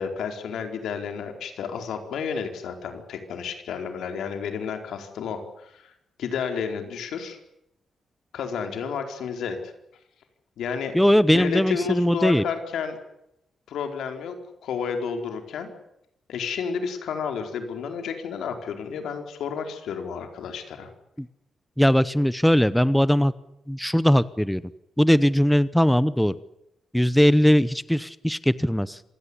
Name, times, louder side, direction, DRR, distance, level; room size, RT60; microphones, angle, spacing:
voice 1, 0.0-5.9 6.2-7.4 8.3-9.6 10.6-11.0 11.3-13.0 13.7-15.7 16.3-20.9, left 6 dB, 85° left, 6 dB, 4.5 m, -31 dB
voice 2, 10.9-12.4 21.2-21.3 21.8-23.3 23.7-24.6 25.0-26.3 26.9-29.0, equal, ahead, 16 dB, 0.9 m, -20 dB
27.0 x 17.5 x 9.9 m, 0.82 s
cardioid pair, 125°, 0 cm